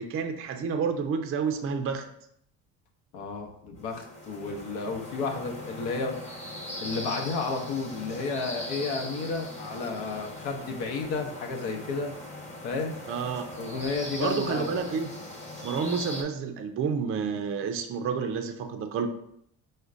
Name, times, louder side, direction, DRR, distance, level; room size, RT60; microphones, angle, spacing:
voice 1, 0.0-2.1 13.1-13.8 14.2-15.1 15.6-19.1, right 6 dB, 35° right, 6 dB, 0.4 m, -30 dB
voice 2, 3.1-6.4 6.8-12.2 12.6-13.0 13.6-14.7, left 4 dB, 80° left, 2 dB, 0.8 m, -32 dB
sound 1, 3.8-16.2, left 1 dB, 20° left, 1.0 m, -40 dB
4.9 x 2.1 x 2.4 m, 0.72 s
supercardioid pair, 80°, 40 cm